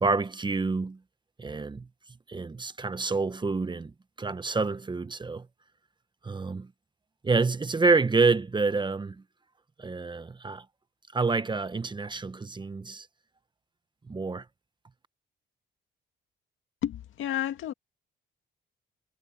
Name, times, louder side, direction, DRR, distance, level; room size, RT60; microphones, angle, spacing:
voice 1, 0.0-1.0 1.4-1.9 2.3-5.5 6.2-6.7 7.2-9.2 9.8-10.6 11.1-13.1 14.1-14.4, right 4 dB, 25° right, 0.9 m, -28 dB
voice 2, 16.8-17.7, left 11 dB, 80° left, 2.1 m, -31 dB
cardioid pair, 90°, 20 cm